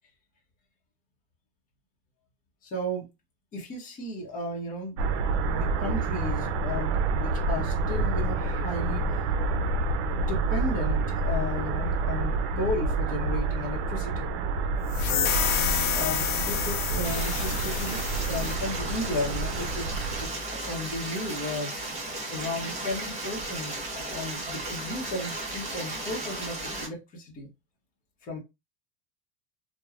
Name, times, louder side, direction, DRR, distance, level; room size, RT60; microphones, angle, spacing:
voice 1, 2.6-3.1 3.5-5.0 5.5-9.1 10.1-14.3 15.9-19.9 20.2-21.7 22.3-27.5 28.2-28.4, left 1 dB, 25° left, 0.9 m, -34 dB
sound 1, 5.0-20.3, right 3 dB, 75° right, 0.6 m, -28 dB
sound 2, 14.9-18.6, left 8 dB, 65° left, 0.7 m, -29 dB
Stream, 17.0-26.9, right 2 dB, 20° right, 1.2 m, -35 dB
3.0 x 2.2 x 2.4 m
supercardioid pair, 155°, 34 cm